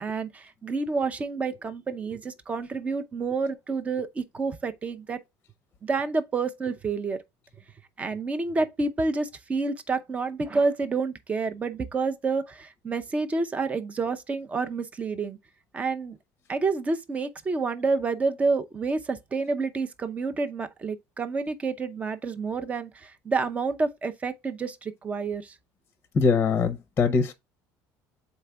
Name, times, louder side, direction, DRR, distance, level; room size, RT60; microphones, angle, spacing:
voice 1, 0.0-5.2 5.8-7.2 8.0-15.4 15.7-16.2 16.5-25.6, right 4 dB, 20° right, 0.6 m, -29 dB
voice 2, 26.1-27.3, left 5 dB, 25° left, 0.7 m, -22 dB
7.0 x 4.2 x 3.4 m
cardioid pair, 155°, 7 cm